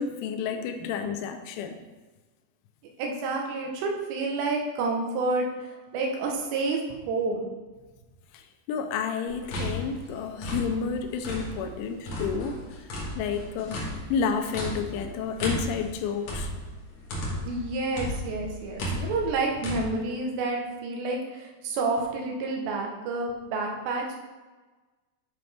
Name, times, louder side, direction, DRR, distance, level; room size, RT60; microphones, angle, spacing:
voice 1, 0.0-1.8 8.3-12.9 13.2-13.8 14.1-16.5, left 6 dB, 80° left, 6 dB, 3.0 m, -30 dB
voice 2, 3.0-5.5 5.9-7.5 17.5-24.2, right 3 dB, 75° right, 1 dB, 3.0 m, -29 dB
sound 1, 9.3-11.7 12.1-17.6 18.0-19.8, equal, 60° left, 1.9 m, -34 dB
9.3 x 5.0 x 3.4 m, 1.3 s
omnidirectional pair, 5.6 m